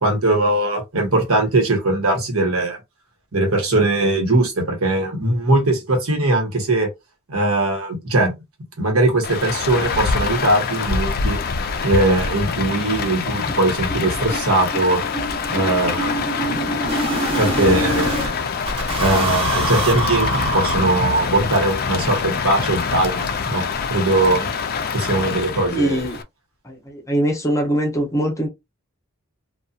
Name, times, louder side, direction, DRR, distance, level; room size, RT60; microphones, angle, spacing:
voice 1, 0.0-2.8 3.3-6.9 7.3-8.3 8.8-11.4 11.8-15.0 15.5-16.4 17.3-18.5 19.0-23.6 23.9-24.5 24.9-26.0, right 2 dB, 80° right, 1.1 m, -20 dB
Rain, 9.2-26.2, left 5 dB, 45° left, 0.3 m, -25 dB
sound 1, 11.4-11.5 11.8-11.9 12.2-12.3 12.7-12.8 13.1-18.3 18.7-21.4, right 2 dB, 30° right, 1.0 m, -26 dB
voice 2, 25.7-26.2 26.7-28.5, right 1 dB, 15° left, 0.7 m, -22 dB
2.7 x 2.3 x 2.4 m
head